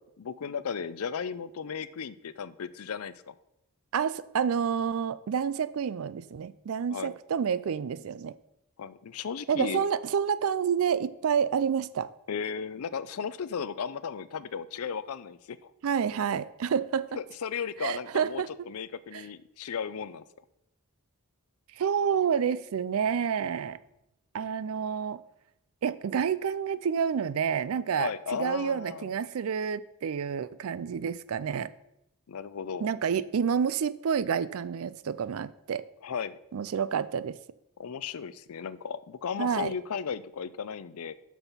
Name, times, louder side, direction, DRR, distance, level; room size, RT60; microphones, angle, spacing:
voice 1, 0.2-3.3 6.9-7.1 8.8-9.9 12.3-15.7 17.2-20.2 28.0-29.1 32.3-32.9 36.0-36.4 37.8-41.1, left 6 dB, 75° left, 16 dB, 0.5 m, -35 dB
voice 2, 3.9-8.3 9.5-12.1 15.8-17.1 17.8-18.5 19.1-19.2 21.8-23.8 24.3-25.2 25.8-31.7 32.8-35.8 36.5-37.4 39.4-39.7, right 7 dB, 70° right, 17 dB, 0.4 m, -29 dB
6.8 x 6.2 x 5.6 m, 0.83 s
head